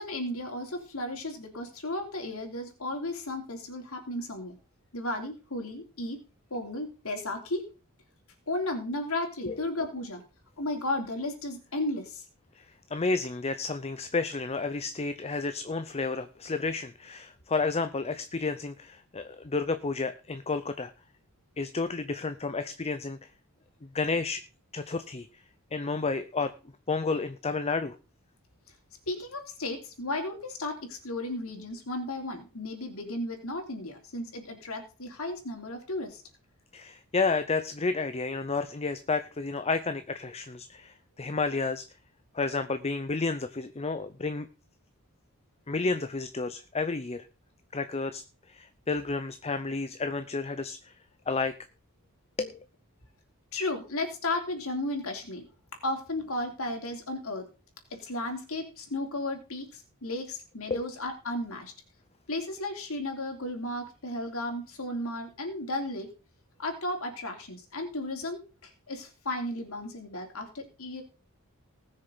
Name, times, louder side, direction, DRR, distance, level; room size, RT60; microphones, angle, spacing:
voice 1, 0.0-4.6 4.9-6.2 6.5-7.7 8.5-10.2 10.6-12.2 29.1-36.2 53.5-55.4 55.8-57.5 57.9-61.7 62.3-66.1 66.6-71.0, left 1 dB, 70° left, 4 dB, 3.2 m, -34 dB
voice 2, 12.9-20.9 21.6-23.3 23.9-24.4 24.7-25.4 25.7-26.5 26.9-27.9 36.7-41.9 42.3-44.5 45.7-47.3 47.7-48.2 48.5-50.9 51.3-51.5 52.4-52.6 60.7-60.9, left 3 dB, 30° left, 10 dB, 0.7 m, -31 dB
19.5 x 6.6 x 4.0 m, 0.33 s
head